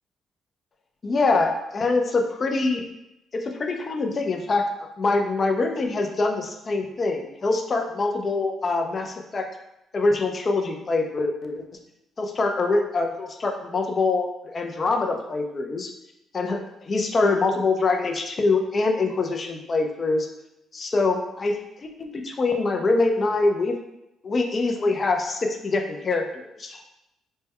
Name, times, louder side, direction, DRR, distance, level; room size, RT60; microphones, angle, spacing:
voice 1, 1.0-2.8 3.3-9.5 9.9-11.7 12.2-15.9 16.3-20.3 20.7-23.8 24.2-26.8, left 3 dB, 40° left, 4 dB, 0.5 m, -24 dB
4.2 x 2.2 x 3.5 m, 0.88 s
cardioid pair, 90°, 0 cm